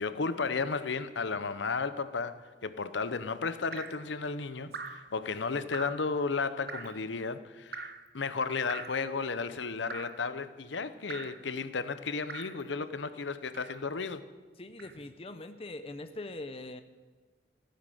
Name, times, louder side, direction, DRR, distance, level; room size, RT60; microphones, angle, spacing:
voice 1, 0.0-14.2, left 4 dB, 85° left, 12 dB, 0.8 m, -34 dB
Drip, 3.7-4.0 4.7-5.1 5.7-6.1 6.7-7.0 7.7-8.1 8.7-9.1 9.9-10.2 11.1-11.4 12.3-12.6 13.5-13.9 14.8-15.0, right 4 dB, 55° right, 0.9 m, -42 dB
voice 2, 14.6-16.8, left 2 dB, 30° left, 10 dB, 0.6 m, -42 dB
15.0 x 9.4 x 7.7 m, 1.4 s
head